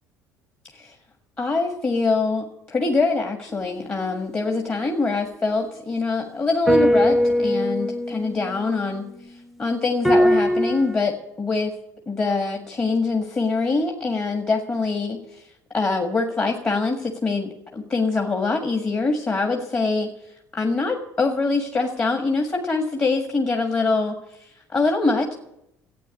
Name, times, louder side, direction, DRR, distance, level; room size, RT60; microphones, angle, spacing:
voice 1, 1.4-11.7 12.1-15.5 15.7-25.3, left 3 dB, 30° left, 2 dB, 1.7 m, -24 dB
sound 1, 6.7-9.4 10.0-11.0, equal, ahead, 0.7 m, -21 dB
12.0 x 8.9 x 8.4 m, 0.83 s
hypercardioid pair, 65°, 9 cm